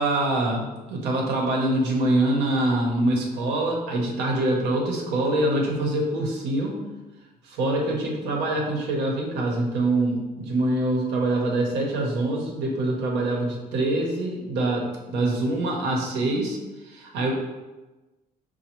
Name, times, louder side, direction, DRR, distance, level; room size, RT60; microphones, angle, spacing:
voice 1, 0.0-6.8 7.5-16.6 16.8-17.3, right 2 dB, 85° right, -1 dB, 0.8 m, -24 dB
4.2 x 2.2 x 2.9 m, 1.1 s
cardioid pair, 110°, 17 cm